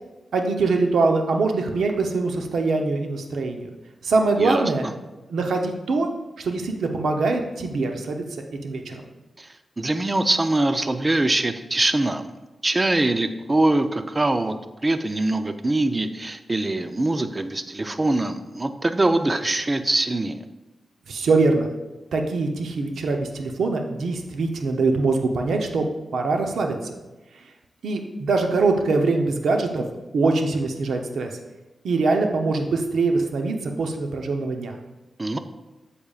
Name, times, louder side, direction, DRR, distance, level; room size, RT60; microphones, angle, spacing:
voice 1, 0.3-3.7 4.0-4.9 5.3-6.1 6.4-8.3 8.6-9.1 21.1-21.7 22.1-25.9 26.1-26.8 27.8-29.8 30.1-31.3 31.8-34.7, right 3 dB, 85° right, 4 dB, 0.8 m, -23 dB
voice 2, 4.4-4.9 9.4-9.5 9.8-12.2 12.6-14.6 14.8-20.4 35.2-35.4, right 2 dB, 25° right, 9 dB, 0.5 m, -23 dB
8.7 x 6.9 x 2.4 m, 1.1 s
wide cardioid pair, 90°, 0 cm